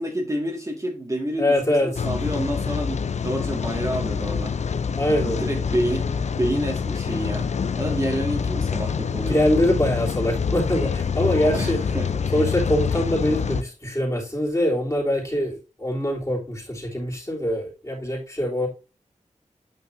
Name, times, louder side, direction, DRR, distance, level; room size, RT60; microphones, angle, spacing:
voice 1, 0.0-4.6 5.2-7.5 7.8-9.4 11.5-12.1, right 1 dB, 25° right, 2.0 m, -28 dB
voice 2, 1.4-2.0 2.3-2.7 4.9-5.4 9.2-11.8 12.3-18.7, left 1 dB, 25° left, 3.4 m, -24 dB
Rain, 2.0-13.6, left 6 dB, 60° left, 0.5 m, -26 dB
9.1 x 5.6 x 2.7 m
wide cardioid pair, 70°, 13 cm